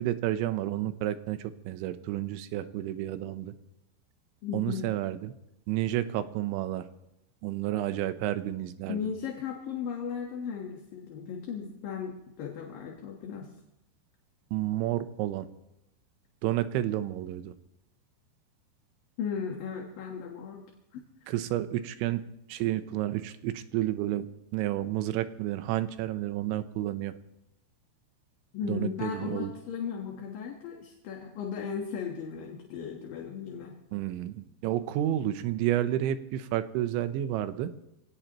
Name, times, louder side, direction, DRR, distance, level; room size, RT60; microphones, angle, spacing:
voice 1, 0.0-3.5 4.5-5.3 5.7-6.8 7.4-9.0 14.5-15.5 16.4-17.5 21.3-22.2 22.5-24.3 24.5-27.1 28.6-29.5 33.9-37.7, right 13 dB, 90° right, 11 dB, 3.2 m, -30 dB
voice 2, 4.4-4.9 8.9-13.5 19.2-20.6 20.9-21.0 28.5-33.8, left 7 dB, 60° left, 1 dB, 2.6 m, -36 dB
25.0 x 17.5 x 3.0 m, 0.85 s
omnidirectional pair, 5.2 m